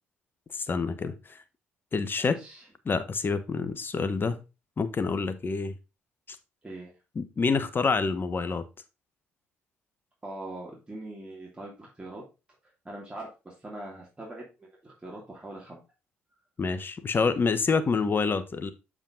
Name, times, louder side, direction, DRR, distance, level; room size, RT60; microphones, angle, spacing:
voice 1, 0.5-1.4 1.9-2.4 2.8-4.4 4.8-5.7 7.1-8.6 16.6-18.7, left 4 dB, 35° left, 1.1 m, -27 dB
voice 2, 2.2-2.7 6.6-6.9 10.2-12.2 12.8-15.8, right 1 dB, 15° right, 2.8 m, -42 dB
7.3 x 5.0 x 3.7 m
hypercardioid pair, 55°, 6 cm